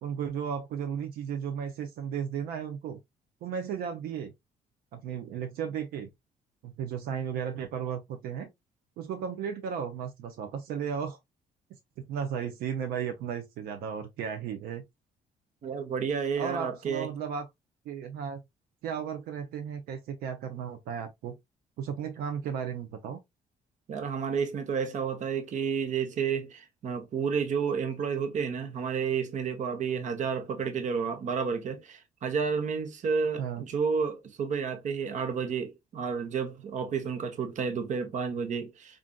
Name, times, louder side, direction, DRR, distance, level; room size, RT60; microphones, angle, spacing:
voice 1, 0.0-3.0 3.4-4.3 4.9-6.1 6.6-8.5 9.0-11.2 12.0-14.8 16.4-17.5 17.9-18.4 18.8-21.4 21.8-23.2 33.4-33.6, right 7 dB, 85° right, 0.5 m, -34 dB
voice 2, 15.6-17.1 23.9-39.0, right 6 dB, 55° right, 0.8 m, -31 dB
3.8 x 2.5 x 2.2 m
cardioid pair, 105°, 15 cm